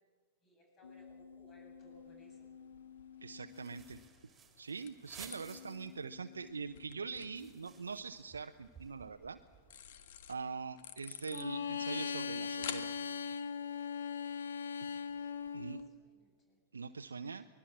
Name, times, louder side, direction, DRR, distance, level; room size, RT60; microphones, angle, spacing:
voice 1, 0.4-2.4 15.4-16.6, equal, 30° left, 0 dB, 7.5 m, -63 dB
sound 1, 0.8-4.0 5.4-7.8 11.3-15.9, left 6 dB, 80° left, 1.1 m, -42 dB
sound 2, 1.8-15.9, left 9 dB, 60° left, 1.7 m, -54 dB
voice 2, 3.2-4.0 4.6-9.4 10.3-12.9 15.5-15.8 16.7-17.5, right 5 dB, 85° right, 7 dB, 0.7 m, -43 dB
sound 3, 3.3-6.1 6.4-6.5 6.8-9.9, right 7 dB, 20° right, 3.2 m, -57 dB
24.0 x 19.5 x 7.4 m, 1.5 s
figure-of-eight pair, 100°, 0 cm